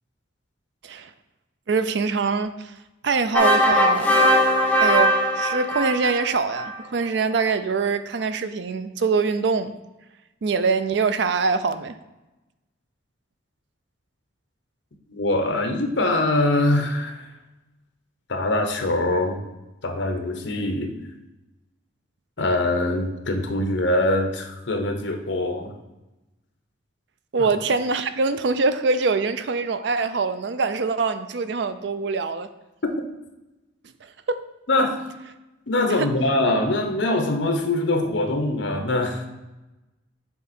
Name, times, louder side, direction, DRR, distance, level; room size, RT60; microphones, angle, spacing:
voice 1, 1.7-2.7 3.0-4.2 4.8-9.7 10.4-12.0 27.3-32.5 34.3-34.4 36.0-36.1, right 4 dB, 65° right, 11 dB, 0.4 m, -24 dB
sound 1, 3.3-6.8, equal, 10° left, 0.7 m, -20 dB
voice 2, 15.1-17.3 18.3-19.4 19.8-20.9 22.4-25.7 27.4-27.5 34.7-35.0 35.7-39.3, left 2 dB, 70° left, 5 dB, 0.9 m, -23 dB
7.1 x 3.8 x 4.2 m, 1.0 s
head